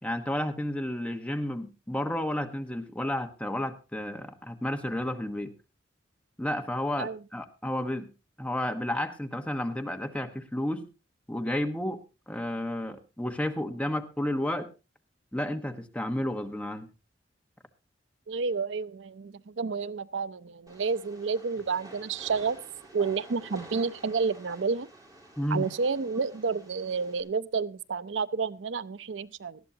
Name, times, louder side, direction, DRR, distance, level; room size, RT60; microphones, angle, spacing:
voice 1, 0.0-5.5 6.4-8.1 8.4-10.9 11.3-12.0 12.3-14.7 15.3-16.9 25.4-25.7, left 1 dB, 5° left, 5 dB, 1.2 m, -31 dB
voice 2, 18.3-22.6 22.9-24.9 25.5-29.6, right 5 dB, 85° right, 16 dB, 0.6 m, -30 dB
Train, 20.7-27.2, right 1 dB, 20° right, 3.8 m, -50 dB
19.0 x 12.5 x 2.8 m, 0.29 s
head